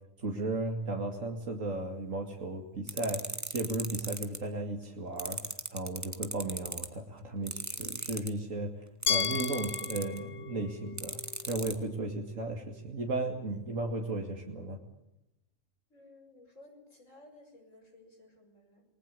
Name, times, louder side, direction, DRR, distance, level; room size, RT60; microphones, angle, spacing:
voice 1, 0.2-11.2 11.4-14.8, right 2 dB, 80° right, 2 dB, 2.9 m, -35 dB
sound 1, 2.9-4.4 5.2-6.9 7.5-8.3 9.0-10.2 11.0-11.7, right 1 dB, 15° right, 2.1 m, -36 dB
Glass, 9.1-12.0, left 8 dB, 50° left, 1.3 m, -35 dB
voice 2, 15.9-18.8, left 2 dB, 70° left, 3 dB, 6.8 m, -56 dB
29.0 x 20.0 x 6.9 m, 0.86 s
omnidirectional pair, 1.3 m